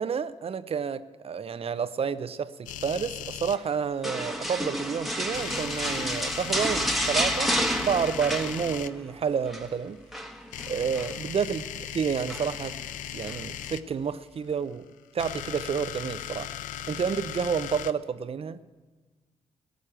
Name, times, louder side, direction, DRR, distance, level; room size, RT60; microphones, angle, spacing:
voice 1, 0.0-10.0 10.7-12.8 13.1-14.8 15.1-16.5 16.9-18.6, right 6 dB, 45° right, 0.7 m, -30 dB
sound 1, 2.7-3.6 5.3-8.9 10.5-13.8 15.0-17.9, left 11 dB, 75° left, 0.5 m, -38 dB
sound 2, 4.0-9.0 9.3-9.7 10.1-11.1 12.3-12.7 13.2-13.4, equal, ahead, 1.3 m, -30 dB
16.5 x 6.4 x 8.8 m
supercardioid pair, 50°, 13 cm